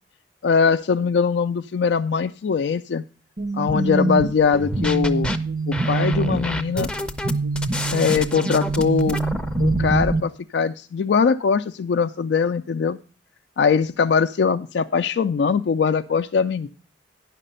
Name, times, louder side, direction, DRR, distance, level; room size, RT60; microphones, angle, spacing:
voice 1, 0.4-3.0 3.5-5.3 5.7-6.9 7.9-9.2 9.6-13.0 13.6-16.7, left 5 dB, 75° left, 8 dB, 0.3 m, -21 dB
sound 1, 3.4-10.2, right 3 dB, 45° right, 0.6 m, -25 dB
sound 2, 4.5-5.4 5.7-10.1, left 1 dB, 5° left, 0.5 m, -29 dB
10.0 x 5.9 x 5.3 m, 0.38 s
head